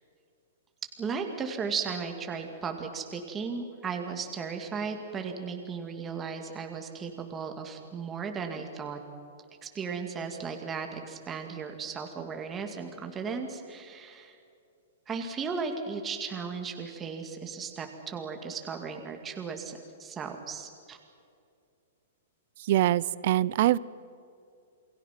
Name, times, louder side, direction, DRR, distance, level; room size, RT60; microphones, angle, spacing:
voice 1, 1.0-9.0 9.6-14.3 15.1-21.0, right 5 dB, 15° right, 4 dB, 2.3 m, -36 dB
voice 2, 22.6-23.8, right 14 dB, 45° right, 21 dB, 0.6 m, -24 dB
28.5 x 23.0 x 6.0 m, 2.4 s
hypercardioid pair, 165°, 0 cm